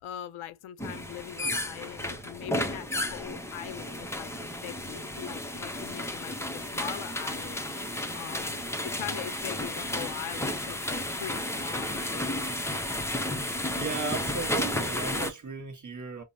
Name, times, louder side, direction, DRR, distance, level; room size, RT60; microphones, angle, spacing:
voice 1, 0.0-7.6 8.1-12.3, left 11 dB, 80° left, 0.6 m, -41 dB
sound 1, 0.8-15.3, left 1 dB, 5° left, 0.5 m, -33 dB
voice 2, 13.4-16.2, right 5 dB, 35° right, 1.1 m, -36 dB
5.1 x 2.0 x 2.6 m
wide cardioid pair, 130°, 49 cm